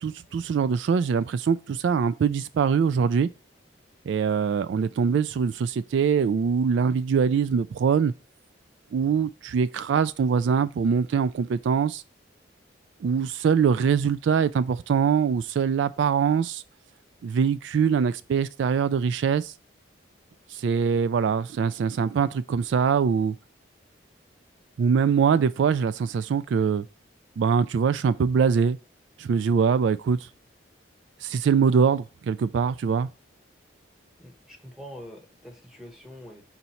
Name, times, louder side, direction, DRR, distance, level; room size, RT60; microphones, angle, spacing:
voice 1, 0.0-3.3 4.1-8.1 8.9-12.0 13.0-16.6 17.2-19.5 20.5-23.3 24.8-26.8 27.4-28.8 29.2-30.3 31.2-33.1, right 6 dB, 70° right, 0.3 m, -23 dB
voice 2, 34.2-36.4, equal, ahead, 1.2 m, -44 dB
5.8 x 4.1 x 4.3 m
head